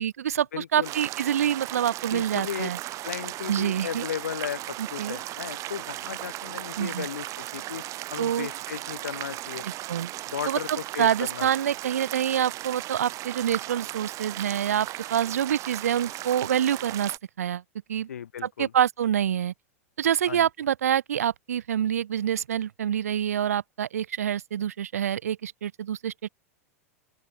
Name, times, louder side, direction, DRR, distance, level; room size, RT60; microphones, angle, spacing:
voice 1, 0.0-2.8 3.5-4.0 4.8-5.2 6.8-7.1 8.2-8.5 9.6-10.1 10.5-17.6 17.9-18.1 18.4-19.5 20.0-26.3, right 9 dB, 85° right, 2.7 m, -26 dB
voice 2, 0.5-0.9 2.1-2.7 3.0-7.8 8.1-9.6 10.3-11.5 18.1-18.7 20.2-20.5, left 9 dB, 90° left, 2.4 m, -35 dB
sound 1, 0.8-17.2, right 16 dB, 40° right, 5.2 m, -36 dB
open air
hypercardioid pair, 110°, 8 cm